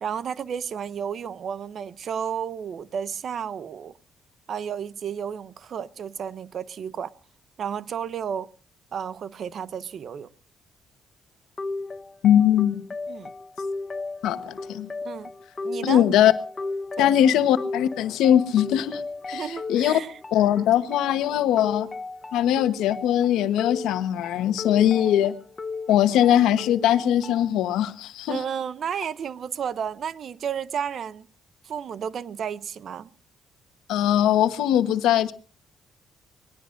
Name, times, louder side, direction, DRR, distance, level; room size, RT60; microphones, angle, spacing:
voice 1, 0.0-3.9 4.5-7.1 7.6-8.5 8.9-10.3 13.1-13.3 15.0-15.3 15.6-16.1 17.0-17.1 19.3-20.2 28.3-31.3 31.6-33.1, right 8 dB, 60° right, 0.7 m, -32 dB
sound 1, 11.6-27.6, left 3 dB, 30° left, 1.0 m, -36 dB
voice 2, 12.2-12.8 14.2-14.9 15.8-16.3 17.0-19.0 19.3-20.0 20.3-21.9 22.3-25.4 25.9-28.4 33.9-35.3, left 11 dB, 90° left, 1.1 m, -21 dB
25.0 x 19.0 x 2.6 m
cardioid pair, 90°, 0 cm